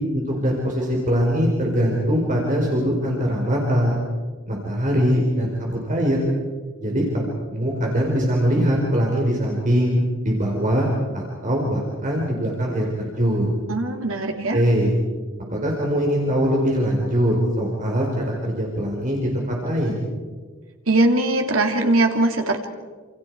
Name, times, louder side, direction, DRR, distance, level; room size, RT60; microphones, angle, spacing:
voice 1, 0.1-4.0 4.5-6.3 6.8-10.9 11.1-13.5 14.5-14.9 15.5-20.0, equal, 40° right, -1 dB, 4.4 m, -22 dB
voice 2, 13.7-14.6 20.9-22.7, right 2 dB, 75° right, 4 dB, 3.0 m, -20 dB
29.0 x 28.0 x 4.8 m, 1.5 s
head